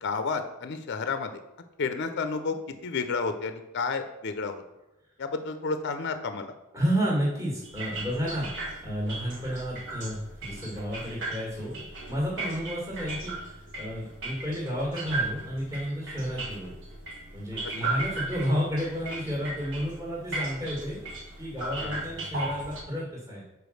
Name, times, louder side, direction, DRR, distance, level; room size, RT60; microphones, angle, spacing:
voice 1, 0.0-1.4 1.8-2.6 2.8-4.6 5.2-6.5 17.8-17.9 21.8-22.0, left 4 dB, 55° left, 8 dB, 0.5 m, -31 dB
voice 2, 6.7-16.7 17.3-23.4, equal, 15° right, -5 dB, 1.6 m, -31 dB
sound 1, 7.6-22.8, right 2 dB, 60° right, 1.5 m, -37 dB
5.1 x 4.8 x 6.3 m, 0.94 s
head